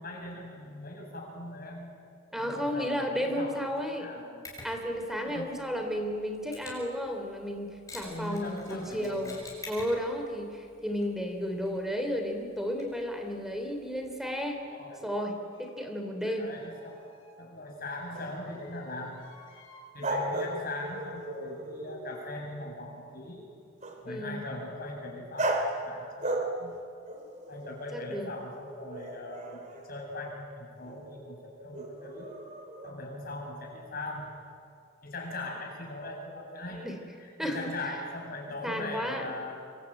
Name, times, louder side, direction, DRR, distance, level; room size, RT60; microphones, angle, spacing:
voice 1, 0.0-1.9 2.4-4.5 5.2-5.5 8.0-9.4 14.5-15.0 16.4-17.0 17.4-19.2 19.9-23.4 24.0-26.9 27.5-32.4 32.8-34.3 35.0-36.8 37.2-39.6, left 2 dB, 45° left, 0 dB, 7.5 m, -40 dB
voice 2, 2.3-4.1 4.6-9.4 9.7-14.6 15.0-16.5 24.0-24.4 27.9-28.3 36.7-36.9 37.4-37.7 38.6-39.2, equal, ahead, 4 dB, 3.2 m, -33 dB
Mechanisms, 4.4-14.3, left 2 dB, 15° left, 7.0 m, -51 dB
sound 1, 15.5-15.8 16.2-17.4 17.8-19.9 20.4-21.0, left 2 dB, 75° left, 7.7 m, -56 dB
sound 2, 18.1-18.3 20.0-22.3 23.8-24.0 25.4-25.8 26.2-26.8 27.1-29.9 30.8-31.0 31.7-32.9, right 1 dB, 35° right, 3.3 m, -35 dB
26.5 x 24.0 x 9.1 m, 2.3 s
head